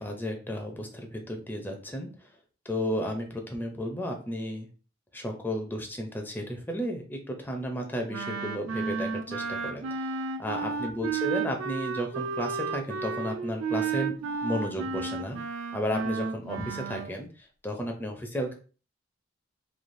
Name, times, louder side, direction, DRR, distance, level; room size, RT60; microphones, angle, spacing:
voice 1, 0.0-2.3 2.7-4.7 5.1-15.4 15.7-18.5, equal, 10° left, 2 dB, 0.4 m, -33 dB
Wind instrument woodwind instrument, 8.1-17.1, right 5 dB, 85° right, 0.3 m, -32 dB
3.2 x 2.3 x 2.5 m, 0.37 s
head